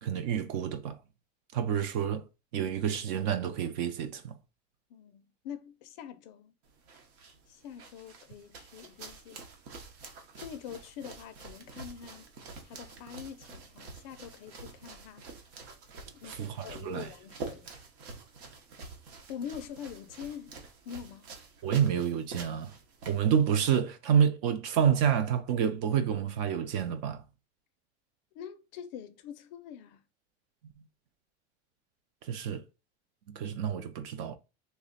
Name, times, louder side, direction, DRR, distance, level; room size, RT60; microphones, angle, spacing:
voice 1, 0.0-1.0 1.5-2.2 2.5-4.4 16.3-17.1 21.6-22.7 23.1-27.2 32.2-32.6 33.3-34.4, right 8 dB, 45° right, 0.4 m, -28 dB
voice 2, 4.9-6.5 7.5-9.5 10.4-12.3 12.6-15.3 16.2-17.7 19.3-20.5 20.9-21.3 28.3-30.0, left 9 dB, 45° left, 0.4 m, -44 dB
sound 1, 6.6-23.6, right 4 dB, 70° right, 1.0 m, -47 dB
3.3 x 2.1 x 3.8 m
supercardioid pair, 170°, 33 cm